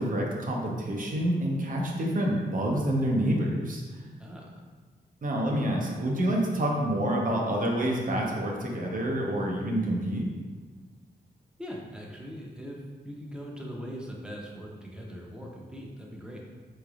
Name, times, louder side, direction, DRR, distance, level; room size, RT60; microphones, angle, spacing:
voice 1, 0.0-3.8 5.2-10.3, right 1 dB, 50° right, -1 dB, 0.7 m, -27 dB
voice 2, 11.6-16.4, equal, 5° right, -2 dB, 0.8 m, -41 dB
3.8 x 3.2 x 2.4 m, 1.4 s
cardioid pair, 65°, 18 cm